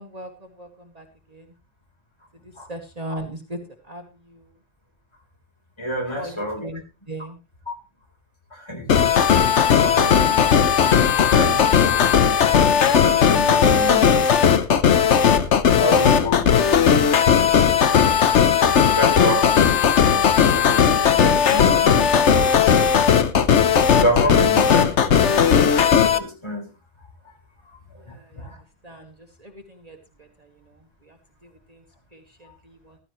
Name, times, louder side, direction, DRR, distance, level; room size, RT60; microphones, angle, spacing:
voice 1, 0.0-1.5 2.4-4.5 6.1-6.8 7.1-7.4 28.0-28.5 28.8-31.2 31.4-31.8 32.1-33.0, right 1 dB, 35° right, 3 dB, 1.6 m, -39 dB
voice 2, 5.8-6.7 7.7-7.8 8.5-8.9 9.7-12.2 12.6-14.2 15.1-15.2 15.6-16.5 19.0-22.3 23.9-25.3 26.1-26.7 28.1-28.6 32.5-32.6, equal, 20° left, 1 dB, 4.1 m, -29 dB
sound 1, 8.9-26.2, left 7 dB, 70° left, 1.2 m, -17 dB
15.0 x 14.0 x 3.1 m, 0.29 s
omnidirectional pair, 1.2 m